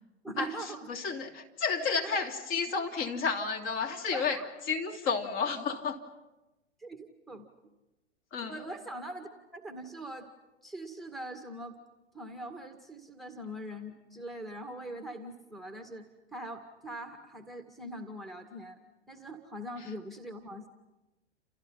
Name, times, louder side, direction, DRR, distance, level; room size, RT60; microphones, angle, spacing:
voice 1, 0.2-0.9 2.0-2.2 4.1-4.5 6.8-7.5 8.4-10.3 10.6-11.8 12.1-18.8 19.1-20.7, right 1 dB, ahead, 5 dB, 2.0 m, -42 dB
voice 2, 0.9-4.4 4.7-6.0 8.3-8.6, left 5 dB, 35° left, 3 dB, 3.0 m, -31 dB
29.5 x 29.0 x 5.7 m, 1.0 s
figure-of-eight pair, 105°, 35 cm